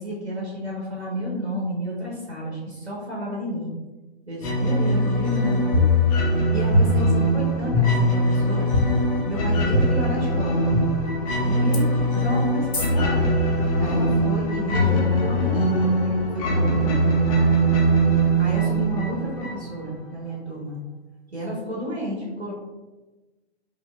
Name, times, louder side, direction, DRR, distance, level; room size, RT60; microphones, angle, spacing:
voice 1, 0.0-3.7 4.3-5.9 6.2-8.7 9.2-10.8 11.4-13.4 13.8-17.3 18.4-20.8 21.3-22.5, equal, 85° right, -5 dB, 1.3 m, -31 dB
sound 1, 4.4-19.9, right 1 dB, 35° left, 0.6 m, -22 dB
sound 2, 5.7-6.4 6.7-7.3 7.7-8.2 8.7-8.8 9.7-9.8 10.7-10.8 11.7-11.8 12.7-12.9, left 3 dB, 70° left, 0.8 m, -20 dB
4.9 x 2.4 x 2.4 m, 1.2 s
figure-of-eight pair, 115°, 32 cm